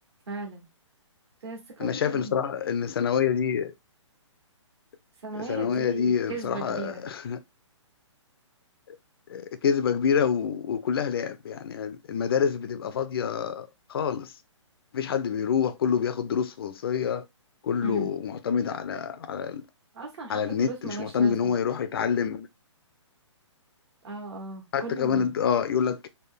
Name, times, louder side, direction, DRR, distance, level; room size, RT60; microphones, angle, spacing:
voice 1, 0.3-0.7 1.4-2.4 5.2-7.0 17.8-18.1 19.9-21.6 24.0-25.3, right 3 dB, 55° right, 1.5 m, -37 dB
voice 2, 1.8-3.7 5.4-7.4 8.9-9.0 9.3-14.3 14.9-17.2 17.6-19.6 20.3-22.5 24.7-26.1, left 7 dB, 50° left, 0.4 m, -27 dB
3.4 x 2.1 x 3.6 m
hypercardioid pair, 155°, 16 cm